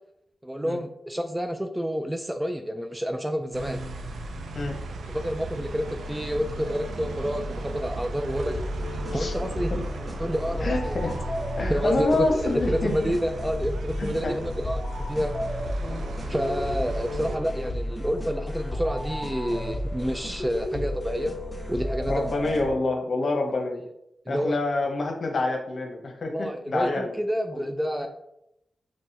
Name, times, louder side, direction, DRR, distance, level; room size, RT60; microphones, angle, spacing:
voice 1, 0.4-3.8 5.1-8.6 8.9-9.7 10.2-11.0 11.7-12.3 12.7-15.3 16.3-21.4 21.7-22.3 24.3-24.6 26.3-28.1, equal, 10° right, 6 dB, 0.3 m, -29 dB
sound 1, 3.5-17.4, right 2 dB, 85° right, 0.4 m, -36 dB
sound 2, 8.4-22.7, left 1 dB, 10° left, 1.6 m, -32 dB
voice 2, 10.6-11.1 11.6-13.1 14.0-14.3 15.8-16.0 20.7-20.9 22.1-23.8 24.3-27.1 27.5-27.6, left 2 dB, 60° left, 2 dB, 0.9 m, -27 dB
5.3 x 3.2 x 2.8 m, 0.81 s
cardioid pair, 65°, 0 cm